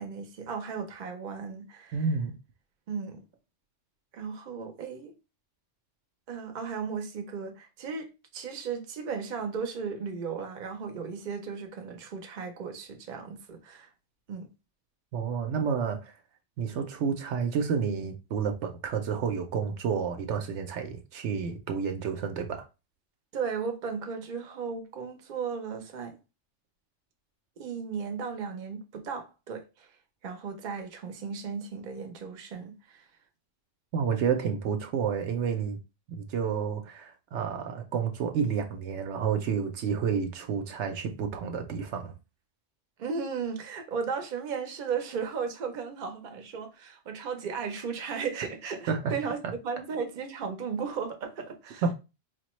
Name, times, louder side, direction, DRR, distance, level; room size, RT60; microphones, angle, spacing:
voice 1, 0.0-2.0 2.9-3.2 4.1-5.1 6.3-13.9 14.3-14.5 23.3-26.2 27.6-29.9 30.2-33.1 43.0-51.8, right 6 dB, 50° right, 0.7 m, -35 dB
voice 2, 1.9-2.3 15.1-16.1 16.6-22.6 33.9-35.8 36.1-42.1 48.9-49.1 51.8-51.9, right 6 dB, 75° right, 0.9 m, -30 dB
4.6 x 2.1 x 3.0 m
omnidirectional pair, 1.2 m